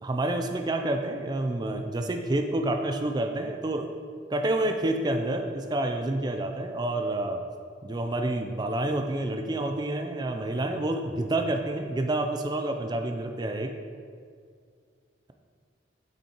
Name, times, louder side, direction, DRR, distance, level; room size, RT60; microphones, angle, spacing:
voice 1, 0.0-3.9 4.3-7.4 7.8-13.7, right 1 dB, 20° right, 5 dB, 0.4 m, -28 dB
7.3 x 5.5 x 4.4 m, 2.2 s
head